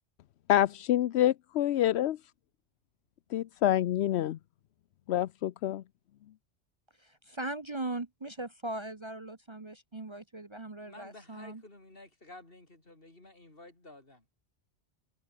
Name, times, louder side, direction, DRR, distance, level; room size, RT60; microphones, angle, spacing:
voice 1, 0.5-2.2 3.3-4.4 5.1-5.8, left 12 dB, 80° left, 0.9 m, -27 dB
voice 2, 7.0-11.6, right 2 dB, 25° right, 1.1 m, -39 dB
voice 3, 10.9-14.2, left 2 dB, 55° left, 4.6 m, -52 dB
omnidirectional pair, 1.1 m